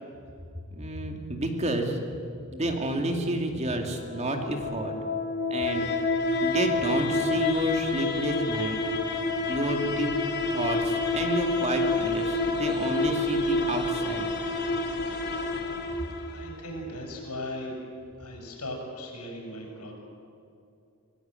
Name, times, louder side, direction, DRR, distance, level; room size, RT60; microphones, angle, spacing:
voice 1, 0.7-2.0 2.5-4.9 5.5-5.9 6.4-8.8 9.5-10.1 10.5-14.3, right 1 dB, 30° right, 4 dB, 2.5 m, -30 dB
sound 1, 3.7-16.7, left 2 dB, 50° left, 2.4 m, -28 dB
voice 2, 16.3-17.7 18.2-19.9, left 1 dB, 90° left, 1 dB, 7.5 m, -38 dB
26.0 x 17.0 x 9.1 m, 2.6 s
head